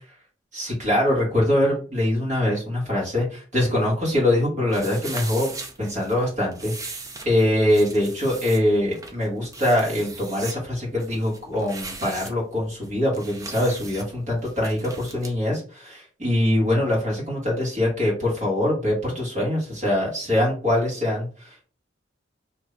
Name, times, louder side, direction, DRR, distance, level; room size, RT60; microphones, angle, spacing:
voice 1, 0.5-5.5 5.8-7.0 7.2-21.6, left 1 dB, 40° right, -4 dB, 1.6 m, -23 dB
sound 1, 4.7-15.3, right 3 dB, 15° right, 0.4 m, -39 dB
2.7 x 2.6 x 3.2 m, 0.39 s
head